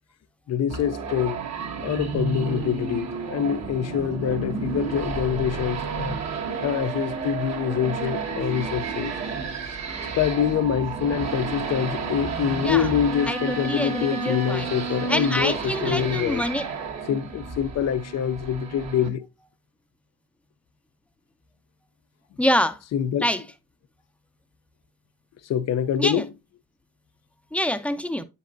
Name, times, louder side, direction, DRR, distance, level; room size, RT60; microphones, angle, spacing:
voice 1, 0.5-1.4 1.8-6.2 6.6-9.1 10.0-16.4 17.1-19.3 22.9-23.3 25.4-26.3, left 9 dB, 60° left, 0.6 m, -25 dB
sound 1, 0.7-19.1, right 5 dB, 60° right, 1.5 m, -31 dB
voice 2, 13.3-14.7 15.1-16.6 22.4-22.8 23.2-23.4 26.0-26.2 27.5-28.2, left 1 dB, 5° left, 0.6 m, -25 dB
8.5 x 5.3 x 2.5 m
cardioid pair, 90°, 30 cm